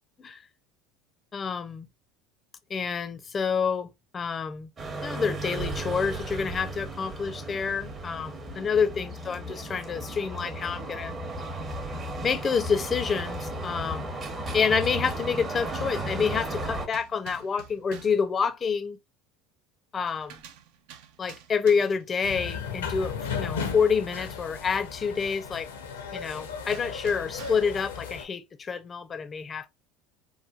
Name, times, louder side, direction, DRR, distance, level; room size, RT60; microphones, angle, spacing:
voice 1, 1.3-1.9 2.7-4.7 5.0-11.1 12.2-14.2 14.5-19.0 19.9-20.4 21.2-25.7 26.1-29.7, left 6 dB, 30° left, 0.4 m, -28 dB
sound 1, 4.8-16.9, right 2 dB, 35° right, 0.8 m, -35 dB
sound 2, 16.9-18.3 20.1-22.1 26.7-27.8, right 9 dB, 70° right, 0.4 m, -48 dB
sound 3, 22.2-28.2, left 6 dB, 90° left, 0.6 m, -35 dB
3.1 x 2.2 x 2.4 m
hypercardioid pair, 80°, 0 cm